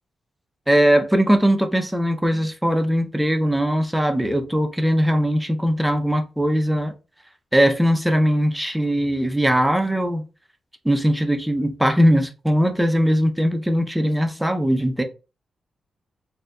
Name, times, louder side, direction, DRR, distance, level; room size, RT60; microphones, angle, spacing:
voice 1, 0.7-6.9 7.5-10.2 10.8-15.0, equal, 5° right, 0.5 m, -20 dB
3.8 x 2.6 x 2.2 m
wide cardioid pair, 125°, 0 cm